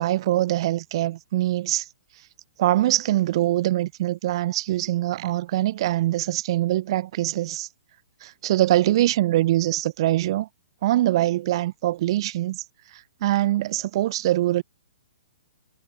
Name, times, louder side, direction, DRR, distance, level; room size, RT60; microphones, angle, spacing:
voice 1, 0.0-1.9 2.6-7.7 8.2-10.5 10.8-12.6 12.9-14.6, right 15 dB, 45° right, 0.5 m, -23 dB
figure-of-eight pair, 120°, 4 cm